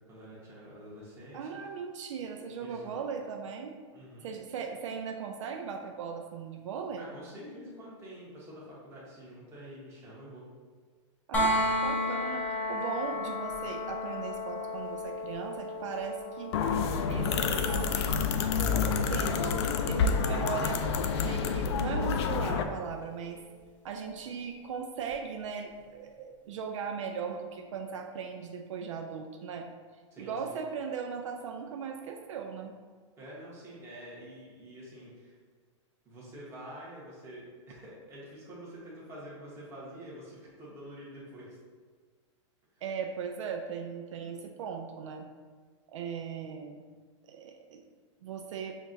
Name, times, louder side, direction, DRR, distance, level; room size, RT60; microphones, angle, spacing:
voice 1, 0.1-1.6 2.6-2.9 3.9-4.3 6.9-10.4 30.1-30.6 33.2-35.4 36.0-41.6 42.7-42.8, equal, 15° right, -7 dB, 1.1 m, -47 dB
voice 2, 1.3-3.7 4.2-7.1 11.3-16.6 17.1-17.6 18.3-19.6 19.9-20.8 21.2-23.4 23.8-29.7 30.2-32.7 42.8-45.3 45.9-46.8 47.2-47.8 48.2-48.7, right 6 dB, 75° right, 4 dB, 0.4 m, -38 dB
sound 1, 11.3-23.1 25.1-25.2, left 1 dB, 10° left, 0.6 m, -35 dB
sound 2, 16.5-22.6, left 5 dB, 55° left, 0.4 m, -28 dB
5.9 x 2.4 x 2.6 m, 1.5 s
supercardioid pair, 150°, 16 cm